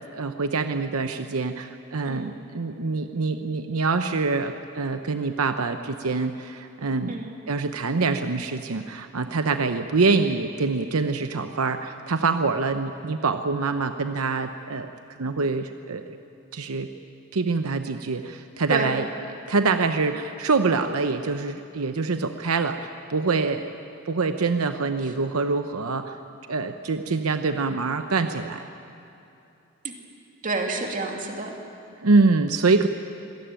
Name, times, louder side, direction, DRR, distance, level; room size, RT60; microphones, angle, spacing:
voice 1, 0.0-7.2 7.5-14.9 15.2-16.2 16.5-16.9 17.3-19.1 19.5-23.7 24.0-26.2 26.5-28.7 32.0-32.9, right 4 dB, 80° right, 8 dB, 0.8 m, -25 dB
voice 2, 2.0-2.4 7.1-7.4 18.7-19.0 25.0-25.1 29.8-29.9 30.4-31.5, right 3 dB, 40° right, 2 dB, 2.6 m, -29 dB
25.5 x 17.0 x 9.0 m, 2.8 s
head